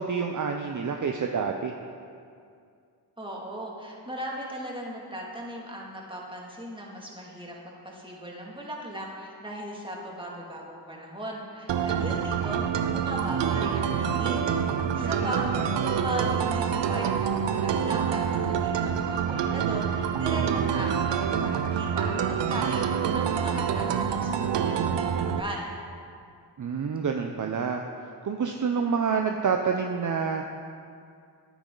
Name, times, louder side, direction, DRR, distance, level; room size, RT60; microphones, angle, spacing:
voice 1, 0.0-1.7 14.7-15.3 26.6-27.8 28.2-30.5, right 6 dB, 45° right, 4 dB, 0.7 m, -28 dB
voice 2, 3.2-14.5 14.9-15.5 15.8-25.7, equal, 10° right, -3 dB, 2.3 m, -37 dB
sound 1, 11.7-25.4, right 8 dB, 80° right, 0.6 m, -27 dB
9.6 x 9.1 x 3.9 m, 2.3 s
cardioid pair, 45°, 43 cm